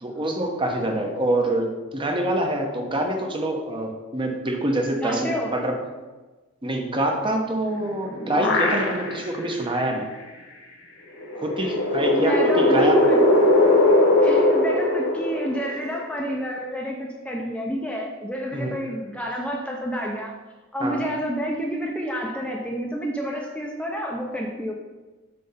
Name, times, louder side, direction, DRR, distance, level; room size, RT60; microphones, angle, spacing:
voice 1, 0.0-5.8 6.6-10.1 11.3-13.0 18.5-18.8 20.8-21.1, right 1 dB, 25° right, 2 dB, 0.8 m, -25 dB
voice 2, 5.0-5.5 11.6-11.7 12.1-13.2 14.2-20.3 20.7-24.7, equal, 5° left, -1 dB, 0.6 m, -29 dB
sound 1, 7.7-9.3 9.8-9.9 11.2-16.0, left 1 dB, 65° left, 1.5 m, -20 dB
7.6 x 3.3 x 5.6 m, 1.2 s
head